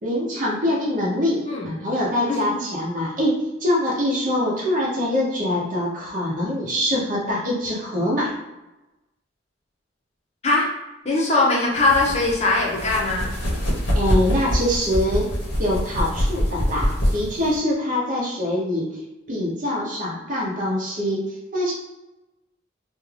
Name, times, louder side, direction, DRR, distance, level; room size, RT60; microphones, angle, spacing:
voice 1, 0.0-8.3 13.9-15.3 15.6-18.8 19.3-21.7, left 1 dB, 45° right, -5 dB, 0.7 m, -24 dB
voice 2, 11.0-13.3, left 2 dB, 35° left, -4 dB, 0.7 m, -20 dB
sound 1, 11.7-17.6, equal, 65° left, 0.9 m, -24 dB
2.5 x 2.3 x 3.2 m, 1.0 s
head